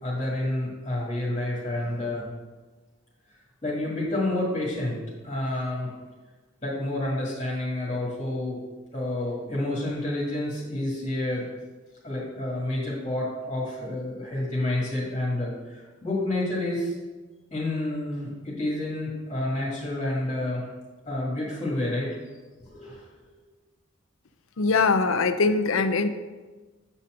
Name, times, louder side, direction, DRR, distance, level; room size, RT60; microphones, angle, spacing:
voice 1, 0.0-2.3 3.6-5.0 5.2-5.9 6.6-8.6 8.9-11.5 12.0-16.9 17.5-20.6 21.1-22.4 22.6-23.1, left 1 dB, 25° left, -5 dB, 1.8 m, -29 dB
voice 2, 24.6-26.1, left 4 dB, 70° left, 9 dB, 0.6 m, -22 dB
8.0 x 4.2 x 6.2 m, 1.3 s
head